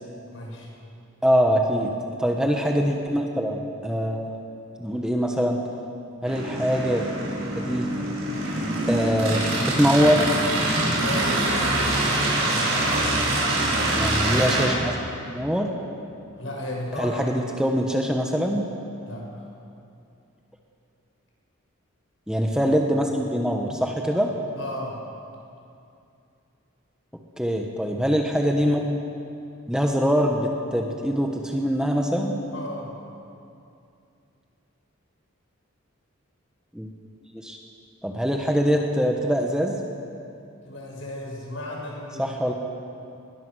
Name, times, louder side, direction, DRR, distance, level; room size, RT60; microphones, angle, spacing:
voice 1, 0.3-0.7 10.8-11.4 16.4-17.2 19.0-19.4 24.6-25.0 32.5-32.9 40.7-42.4, left 1 dB, 65° left, -1 dB, 6.1 m, -34 dB
voice 2, 1.2-1.9 2.2-4.4 4.8-5.6 6.2-7.0 7.5-7.9 8.9-10.3 13.9-14.9 15.3-15.7 17.0-18.7 22.3-24.3 27.4-28.8 29.7-32.4 36.7-36.9 37.3-37.6 38.0-39.8 42.2-42.5, equal, 5° right, 1 dB, 1.2 m, -23 dB
sound 1, 6.2-14.7, right 1 dB, 70° right, 6.4 m, -24 dB
21.0 x 20.5 x 6.4 m, 2.6 s
head